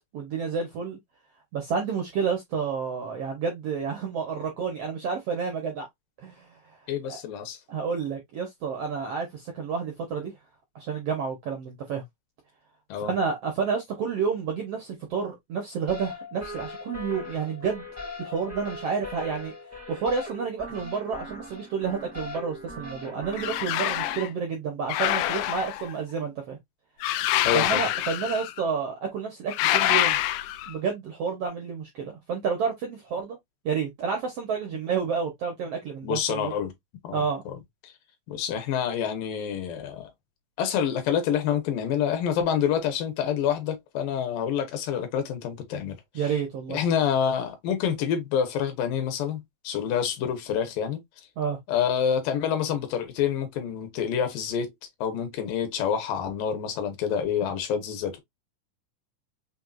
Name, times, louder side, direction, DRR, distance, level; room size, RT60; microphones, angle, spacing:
voice 1, 0.1-1.0 1.5-5.9 6.2-6.8 7.1-7.2 7.7-10.3 10.7-12.0 13.0-17.9 18.2-19.5 19.9-26.6 27.5-30.2 30.7-33.4 33.6-36.5 37.1-37.4 46.1-46.8 51.4-51.6, right 6 dB, 80° right, 1.4 m, -30 dB
voice 2, 6.9-7.6 12.9-13.1 27.4-27.8 36.0-36.7 37.0-37.6 38.3-40.1 40.6-46.0 46.7-51.0 51.7-54.7 55.0-58.2, left 8 dB, 75° left, 2.6 m, -27 dB
sound 1, 15.9-24.2, left 2 dB, 25° right, 0.3 m, -40 dB
sound 2, 23.3-24.3 24.9-25.9 27.0-28.6 29.5-30.7, left 14 dB, 90° left, 1.8 m, -26 dB
6.3 x 2.7 x 2.4 m
omnidirectional pair, 4.2 m